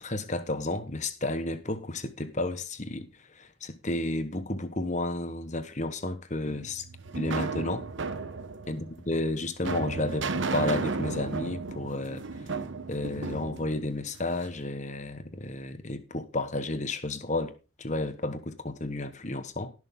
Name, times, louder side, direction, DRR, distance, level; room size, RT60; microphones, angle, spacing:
voice 1, 0.0-3.1 3.3-6.8 7.1-7.8 8.7-12.2 12.9-17.5 17.8-19.7, left 2 dB, 35° left, 1.2 m, -32 dB
sound 1, 6.5-14.6, right 4 dB, 65° right, 1.0 m, -34 dB
18.5 x 6.5 x 3.7 m
head